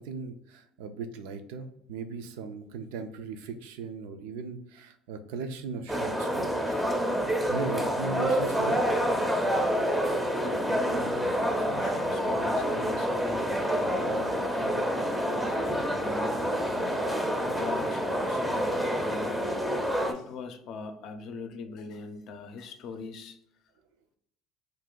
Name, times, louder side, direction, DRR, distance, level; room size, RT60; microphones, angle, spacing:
voice 1, 0.0-6.8 7.5-8.8, right 4 dB, 85° right, 0.4 m, -38 dB
sound 1, 5.9-20.1, equal, 5° right, 0.5 m, -28 dB
voice 2, 9.3-19.8 20.1-23.4, left 4 dB, 60° left, 0.5 m, -42 dB
2.6 x 2.4 x 3.7 m
supercardioid pair, 100°, 0 cm